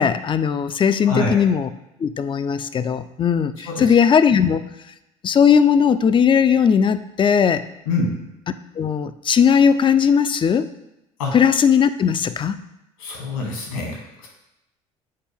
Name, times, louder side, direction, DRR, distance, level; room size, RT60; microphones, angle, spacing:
voice 1, 0.0-1.7 2.0-4.6 5.2-7.6 8.8-10.7 11.3-12.6, left 7 dB, 30° left, 12 dB, 0.5 m, -18 dB
voice 2, 1.0-1.4 3.7-3.9 7.9-8.2 11.2-11.4 13.0-14.3, left 2 dB, 80° left, 0 dB, 1.8 m, -25 dB
7.6 x 4.2 x 3.5 m, 0.89 s
hypercardioid pair, 60°, 17 cm